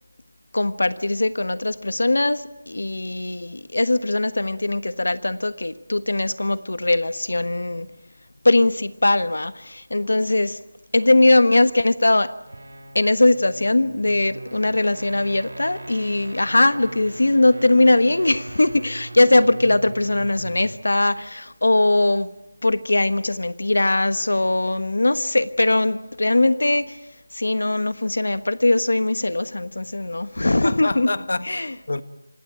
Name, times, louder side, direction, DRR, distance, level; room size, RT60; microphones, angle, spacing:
voice 1, 0.5-7.9 8.4-10.6 10.9-12.3 12.9-22.3 22.6-27.0 27.3-31.1 31.4-31.7, left 2 dB, 80° left, 1.3 m, -20 dB
sound 1, 12.4-20.8, right 2 dB, 70° right, 2.3 m, -39 dB
voice 2, 30.4-32.0, left 2 dB, 60° left, 1.4 m, -28 dB
26.5 x 19.0 x 9.0 m
figure-of-eight pair, 175°, 0 cm